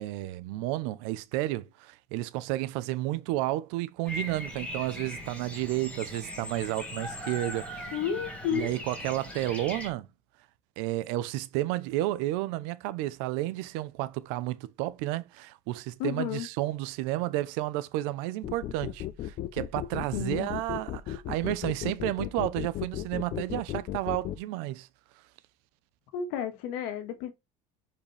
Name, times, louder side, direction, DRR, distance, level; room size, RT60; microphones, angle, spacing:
voice 1, 0.0-7.9 8.5-10.1 10.8-24.9, right 16 dB, 85° right, 0.8 m, -32 dB
Bird vocalization bird call bird song, 4.1-9.9, left 1 dB, 10° left, 2.1 m, -39 dB
voice 2, 7.9-8.8 16.0-16.5 20.1-20.5 26.1-27.3, left 8 dB, 75° left, 1.8 m, -32 dB
sound 1, 18.4-24.4, left 13 dB, 40° left, 0.7 m, -35 dB
7.1 x 5.2 x 3.4 m
cardioid pair, 170°, 15 cm